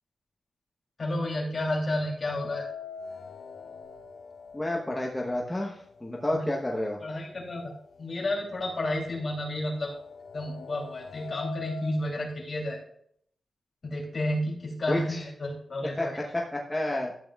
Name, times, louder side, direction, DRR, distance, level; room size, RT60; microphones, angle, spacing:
voice 1, 1.0-2.6 6.3-6.4 7.0-7.7 8.0-9.9 10.3-12.8 13.8-16.2, left 1 dB, 40° left, -2 dB, 2.8 m, -31 dB
sound 1, 2.2-6.3 6.6-6.7 7.7-7.8 8.2-12.0, left 5 dB, 65° left, 0.7 m, -44 dB
voice 2, 4.5-7.0 14.9-15.3 16.0-17.1, left 1 dB, 10° left, -2 dB, 0.9 m, -30 dB
12.5 x 8.6 x 2.3 m, 0.67 s
wide cardioid pair, 165°, 0 cm